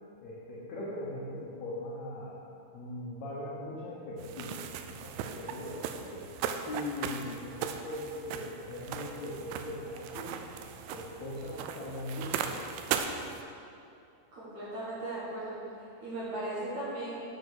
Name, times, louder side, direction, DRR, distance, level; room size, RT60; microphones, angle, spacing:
voice 1, 0.2-2.4 2.7-4.6 4.9-6.3 6.7-10.4 10.9-12.7, left 1 dB, 75° left, -6 dB, 1.6 m, -40 dB
sound 1, 4.2-13.4, right 8 dB, 85° right, 2.2 m, -38 dB
voice 2, 14.3-17.2, right 1 dB, 55° right, -8 dB, 2.3 m, -37 dB
7.8 x 6.4 x 6.3 m, 2.6 s
omnidirectional pair, 4.9 m